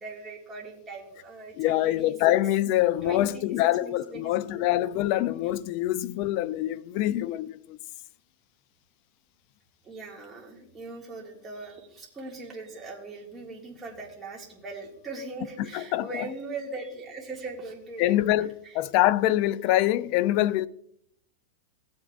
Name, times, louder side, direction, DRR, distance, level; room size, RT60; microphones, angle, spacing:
voice 1, 0.0-2.1 3.0-3.5 3.8-4.6 9.8-18.2 18.6-18.8, right 3 dB, 15° right, 2.0 m, -40 dB
voice 2, 1.6-7.8 15.6-16.2 18.0-20.7, left 14 dB, 50° left, 0.4 m, -25 dB
16.5 x 7.9 x 2.5 m
supercardioid pair, 140°, 0 cm